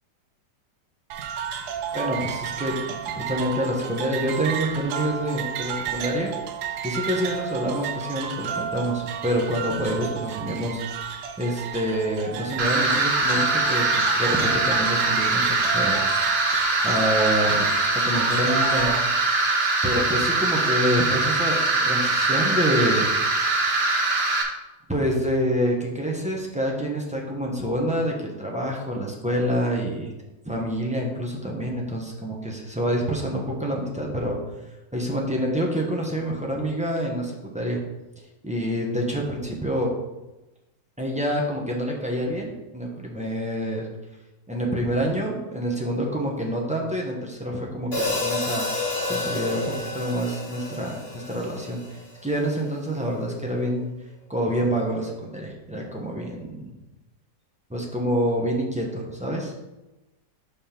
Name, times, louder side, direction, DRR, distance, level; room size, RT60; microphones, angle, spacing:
sound 1, 1.1-19.0, right 8 dB, 75° right, 1.2 m, -32 dB
voice 1, 1.9-6.3 6.8-10.8 11.4-16.0 16.8-17.7 18.0-19.0 19.8-21.5 21.8-23.0 23.7-23.9 24.9-30.1 30.4-34.4 34.9-37.8 38.4-39.9 41.0-43.9 44.5-53.9 54.3-56.7 57.7-59.5, equal, 5° right, -2 dB, 0.8 m, -27 dB
sound 2, 12.6-24.4, right 2 dB, 40° right, 1.2 m, -22 dB
Hi-hat, 47.9-52.2, left 2 dB, 35° left, 2.4 m, -29 dB
5.4 x 5.3 x 5.9 m, 1.0 s
omnidirectional pair, 1.8 m